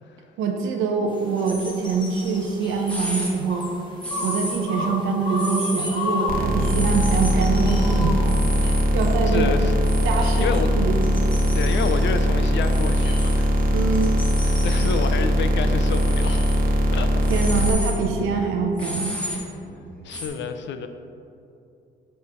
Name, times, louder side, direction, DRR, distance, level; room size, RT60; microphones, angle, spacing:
voice 1, 0.4-3.7 4.2-8.2 8.6-9.5 10.0-11.0 13.7-14.1 17.3-19.2, right 5 dB, 85° right, 2 dB, 0.7 m, -24 dB
sound 1, 1.1-17.6, left 2 dB, 25° left, 1.3 m, -36 dB
sound 2, 1.4-1.7 2.4-2.5 2.9-3.3 4.0-4.8 5.4-5.9 6.6-7.3 8.2-8.8 9.8-10.5 11.2-11.9 12.7-13.4 14.2-14.9 15.9-16.6 17.1-20.3, equal, 5° left, 1.3 m, -33 dB
sound 3, 6.3-17.7, equal, 45° right, 0.9 m, -21 dB
voice 2, 9.3-9.7 10.4-10.7 11.5-13.5 14.5-16.4 16.9-17.2 20.0-20.9, left 6 dB, 65° left, 8 dB, 0.5 m, -29 dB
7.0 x 3.3 x 5.5 m, 2.6 s
cardioid pair, 90°, 20 cm